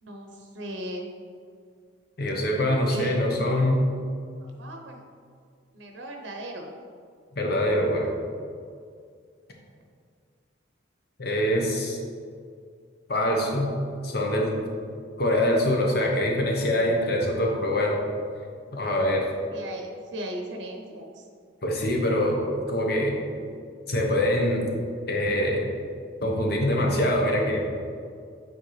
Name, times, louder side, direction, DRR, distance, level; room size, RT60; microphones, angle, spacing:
voice 1, 0.0-1.1 2.8-3.2 3.4-3.7 4.4-5.0 5.7-6.7 19.5-21.3, right 1 dB, 70° right, 2 dB, 0.7 m, -37 dB
voice 2, 2.2-3.8 7.4-8.1 11.2-12.0 13.1-13.7 14.0-14.6 15.2-18.0 18.7-19.2 21.6-22.4 22.7-23.2 23.9-24.7 25.1-25.7 26.2-27.7, left 1 dB, 55° left, 0 dB, 1.0 m, -24 dB
8.4 x 4.4 x 3.2 m, 2.2 s
head